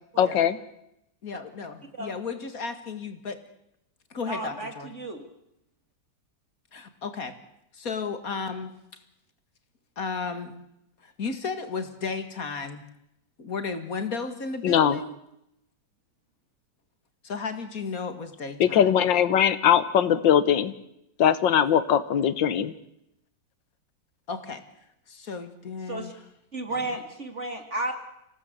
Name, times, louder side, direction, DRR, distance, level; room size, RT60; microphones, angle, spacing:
voice 1, 0.2-0.6 14.6-15.0 18.6-20.7 21.2-22.7, left 9 dB, 85° left, 14 dB, 1.8 m, -21 dB
voice 2, 1.2-3.4 4.1-4.9 6.7-7.4 7.7-9.0 10.0-10.6 11.0-12.8 13.4-15.1 17.2-19.0 24.3-24.6 25.1-26.1 26.7-27.0, left 4 dB, 50° left, 9 dB, 2.4 m, -34 dB
voice 3, 4.3-5.2 25.9-26.1 26.5-27.9, right 2 dB, 40° right, 6 dB, 2.3 m, -33 dB
27.0 x 17.5 x 8.1 m, 0.83 s
omnidirectional pair, 2.0 m